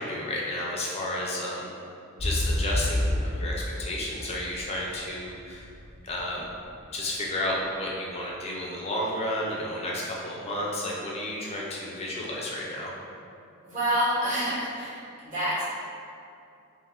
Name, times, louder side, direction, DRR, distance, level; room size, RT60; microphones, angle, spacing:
voice 1, 0.0-1.7 2.1-5.6 6.0-6.5 6.9-12.9, left 1 dB, 30° left, -4 dB, 0.4 m, -32 dB
sound 1, 2.2-6.1 6.6-6.7, left 1 dB, 80° right, 1.4 m, -28 dB
voice 2, 13.6-15.6, equal, 35° right, -10 dB, 1.0 m, -28 dB
2.5 x 2.3 x 3.4 m, 2.5 s
head